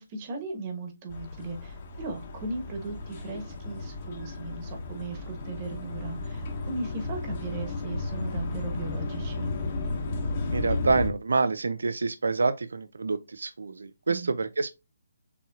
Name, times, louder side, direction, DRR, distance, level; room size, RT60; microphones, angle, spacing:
voice 1, 0.0-9.5 14.1-14.3, right 3 dB, 25° right, 1.1 m, -37 dB
sound 1, 1.1-11.1, left 2 dB, 30° left, 1.1 m, -34 dB
voice 2, 10.5-14.8, right 4 dB, 90° right, 0.5 m, -27 dB
6.9 x 3.0 x 2.4 m
hypercardioid pair, 170°, 0 cm